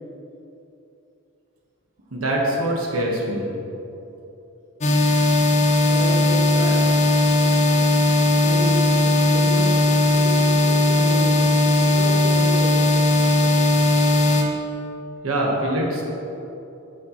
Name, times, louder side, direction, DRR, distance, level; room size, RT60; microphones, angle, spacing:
voice 1, 2.1-3.5 15.2-16.0, right 1 dB, 75° right, -2 dB, 1.3 m, -23 dB
sound 1, 4.8-14.4, left 1 dB, 35° left, 0.7 m, -18 dB
voice 2, 5.9-6.9 8.4-9.0 9.3-11.5 11.9-12.8, equal, 35° right, -3 dB, 1.1 m, -31 dB
9.7 x 6.4 x 3.0 m, 2.9 s
head